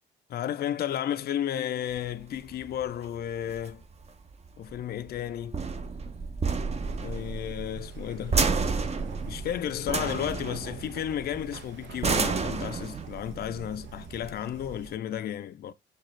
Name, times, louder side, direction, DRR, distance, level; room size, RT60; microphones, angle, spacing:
voice 1, 0.3-3.8 4.6-5.6 7.0-8.4 9.3-15.7, left 10 dB, 55° left, 0.4 m, -33 dB
sound 1, 1.9-14.9, right 4 dB, 35° right, 0.7 m, -32 dB
sound 2, 6.8-14.9, right 8 dB, 70° right, 0.9 m, -48 dB
6.4 x 2.4 x 3.1 m
cardioid pair, 90°, 20 cm